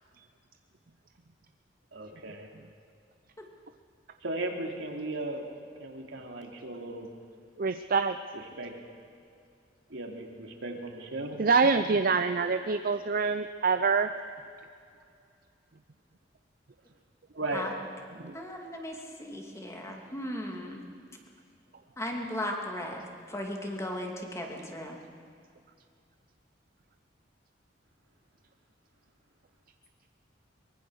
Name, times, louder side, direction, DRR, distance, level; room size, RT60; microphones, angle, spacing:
voice 1, 1.9-2.5 4.2-5.4 5.8-7.1 8.3-8.7 9.9-11.4 17.4-17.7, right 2 dB, 75° right, 1 dB, 2.9 m, -36 dB
voice 2, 7.6-8.2 11.4-14.1 18.2-18.4, right 4 dB, 50° right, 9 dB, 0.6 m, -25 dB
voice 3, 18.3-20.8 22.0-25.0, left 1 dB, 15° left, 1 dB, 2.6 m, -37 dB
23.5 x 21.5 x 6.5 m, 2.4 s
head